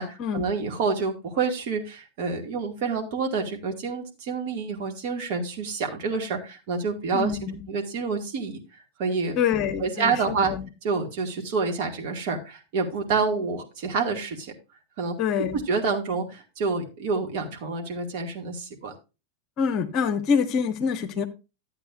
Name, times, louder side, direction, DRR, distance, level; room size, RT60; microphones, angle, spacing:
voice 1, 0.0-8.6 9.0-9.4 9.8-10.5 10.8-14.5 15.0-15.2 15.7-18.9, right 4 dB, 45° right, 2 dB, 2.2 m, -28 dB
voice 2, 7.1-7.6 9.4-10.7 15.2-15.6 19.6-21.3, left 7 dB, 35° left, 10 dB, 1.0 m, -26 dB
12.5 x 8.1 x 2.6 m, 0.29 s
figure-of-eight pair, 90°, 0 cm